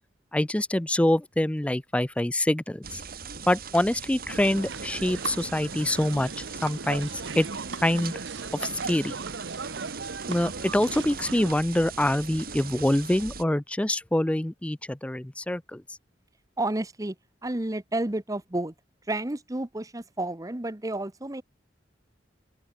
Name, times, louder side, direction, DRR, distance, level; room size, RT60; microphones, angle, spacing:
voice 1, 0.3-3.0 3.5-7.1 7.4-7.5 7.8-8.1 8.6-9.1 10.3-15.8, left 1 dB, 5° left, 0.4 m, -25 dB
sound 1, 2.8-13.4, right 5 dB, 55° right, 5.0 m, -40 dB
sound 2, 4.3-11.5, right 4 dB, 75° right, 1.1 m, -37 dB
voice 2, 16.6-17.1 17.4-18.7 19.1-21.4, right 1 dB, 20° right, 1.0 m, -30 dB
open air
head